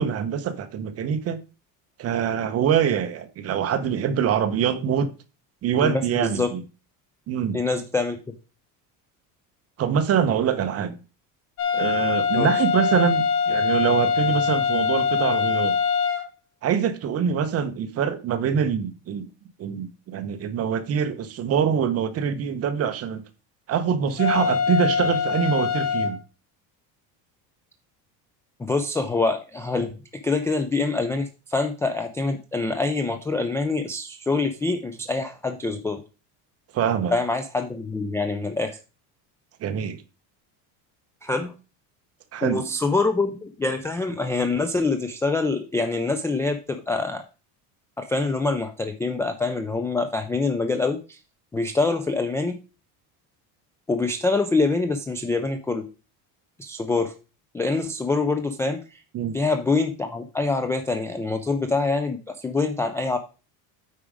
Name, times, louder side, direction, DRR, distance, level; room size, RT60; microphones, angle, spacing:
voice 1, 0.0-1.4 2.0-5.1 5.6-6.6 7.3-7.6 9.8-11.0 11.7-15.7 16.6-19.3 19.6-23.2 23.7-26.2 36.7-37.1 39.6-40.0 42.3-42.6 59.1-59.3, right 8 dB, 35° right, 1.0 m, -24 dB
voice 2, 5.8-6.5 7.5-8.2 12.3-12.6 28.6-29.9 30.2-36.0 37.1-38.8 41.2-41.5 42.4-47.2 48.0-51.2 51.5-52.5 53.9-55.8 56.6-57.1 57.5-59.0 59.3-63.2, left 3 dB, 5° left, 0.3 m, -25 dB
sound 1, 11.6-16.2 24.2-26.1, left 6 dB, 40° left, 1.9 m, -23 dB
8.9 x 4.9 x 4.9 m
cardioid pair, 145°, 41 cm